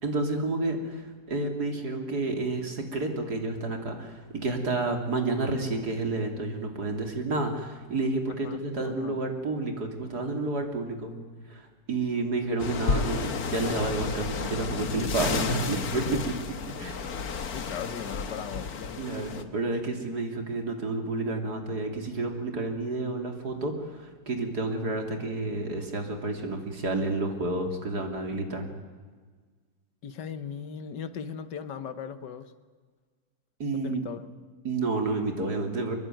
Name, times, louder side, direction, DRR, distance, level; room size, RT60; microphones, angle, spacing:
voice 1, 0.0-11.1 11.5-16.4 16.8-17.0 19.0-28.7 33.6-34.1 34.6-36.0, right 2 dB, 65° right, 4 dB, 3.6 m, -30 dB
voice 2, 8.3-9.2 17.5-19.1 30.0-32.5 33.7-34.2, left 7 dB, 85° left, 11 dB, 1.9 m, -38 dB
sound 1, 12.6-19.4, left 5 dB, 60° left, 1.9 m, -32 dB
24.5 x 21.5 x 9.2 m, 1.5 s
omnidirectional pair, 1.8 m